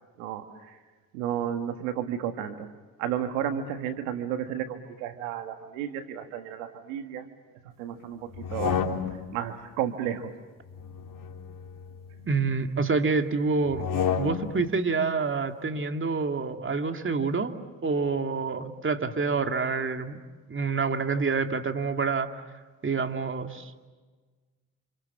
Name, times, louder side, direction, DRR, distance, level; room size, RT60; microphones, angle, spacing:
voice 1, 0.2-0.8 1.1-2.7 3.0-7.3 7.8-8.8 9.3-10.3, right 10 dB, 90° right, 7 dB, 1.8 m, -32 dB
sound 1, 8.3-9.4 10.7-12.3 13.7-14.7, left 7 dB, 55° left, 3.6 m, -31 dB
voice 2, 12.3-13.9 14.2-20.2 20.5-22.4 22.8-23.9, right 4 dB, 30° right, 6 dB, 2.6 m, -27 dB
28.5 x 28.5 x 7.3 m, 1.4 s
hypercardioid pair, 60°, 39 cm